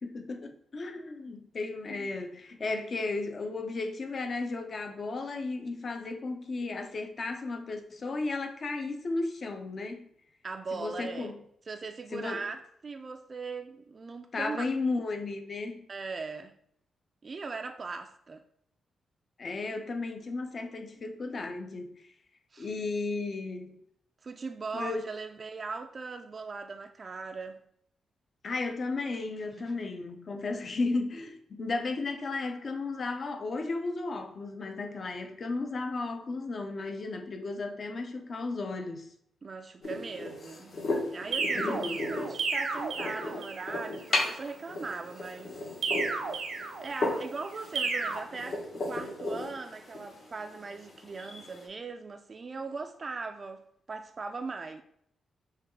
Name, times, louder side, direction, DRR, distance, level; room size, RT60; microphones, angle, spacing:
voice 1, 0.0-10.1 10.7-11.4 12.1-12.4 14.3-15.9 19.4-22.0 22.6-23.8 24.7-25.0 28.4-39.1 41.5-42.0, left 3 dB, 45° left, 0.6 m, -34 dB
voice 2, 10.4-11.3 11.7-12.6 12.8-14.6 15.9-16.5 17.2-18.4 22.5-22.7 24.2-27.6 29.6-29.7 39.4-40.8 41.1-45.6 46.8-53.6 53.9-54.8, right 4 dB, 40° right, 0.3 m, -39 dB
sound 1, 39.8-51.7, left 2 dB, 60° left, 1.3 m, -36 dB
sound 2, 41.3-43.7 45.8-47.2 47.7-48.2, right 4 dB, 75° right, 0.7 m, -32 dB
5.7 x 2.3 x 3.6 m
cardioid pair, 105°, 0 cm